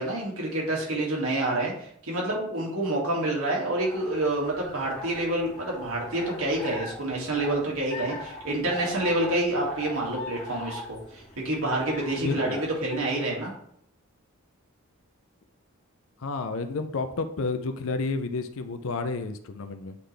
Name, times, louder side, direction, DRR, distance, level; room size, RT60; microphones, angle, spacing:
voice 1, 0.0-13.5, right 1 dB, 80° right, -3 dB, 2.3 m, -28 dB
sound 1, 3.6-13.3, left 1 dB, 30° left, 1.4 m, -41 dB
voice 2, 12.2-12.6 16.2-20.0, left 3 dB, 70° left, 8 dB, 0.5 m, -31 dB
8.2 x 3.9 x 3.4 m, 0.68 s
head